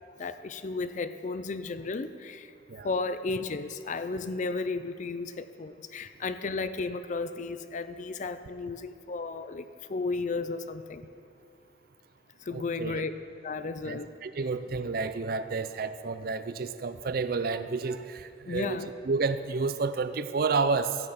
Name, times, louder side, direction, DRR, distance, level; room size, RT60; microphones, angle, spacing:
voice 1, 0.2-2.5 2.8-11.1 12.4-13.1 13.4-14.1 18.5-18.9, left 3 dB, 45° left, 12 dB, 0.4 m, -34 dB
voice 2, 12.5-13.0 13.9-18.8 19.1-21.0, right 4 dB, 55° right, 12 dB, 0.5 m, -30 dB
13.5 x 8.8 x 5.7 m, 2.4 s
head